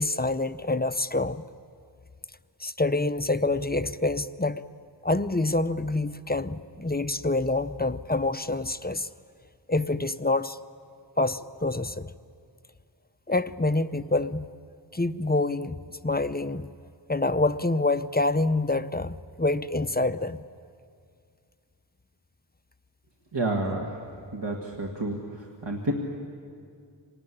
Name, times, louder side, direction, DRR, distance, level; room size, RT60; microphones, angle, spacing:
voice 1, 0.0-1.4 2.6-4.6 5.0-9.1 9.7-10.6 11.2-12.1 13.3-14.5 14.9-16.7 17.1-20.4, left 2 dB, 20° left, 12 dB, 0.6 m, -26 dB
voice 2, 23.3-23.9 24.3-25.2 25.6-25.9, right 2 dB, 80° right, 0 dB, 1.9 m, -29 dB
26.0 x 19.5 x 9.9 m, 2.3 s
wide cardioid pair, 45°, 43 cm